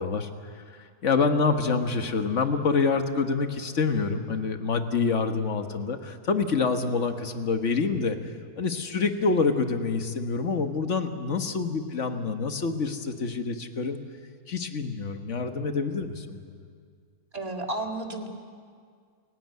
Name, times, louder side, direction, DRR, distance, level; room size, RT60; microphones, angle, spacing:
voice 1, 0.0-8.2 8.6-14.0 14.5-16.5, left 4 dB, 50° left, 7 dB, 1.6 m, -27 dB
voice 2, 17.3-18.3, right 2 dB, 25° right, 3 dB, 2.1 m, -32 dB
28.5 x 16.0 x 9.4 m, 2.1 s
omnidirectional pair, 1.7 m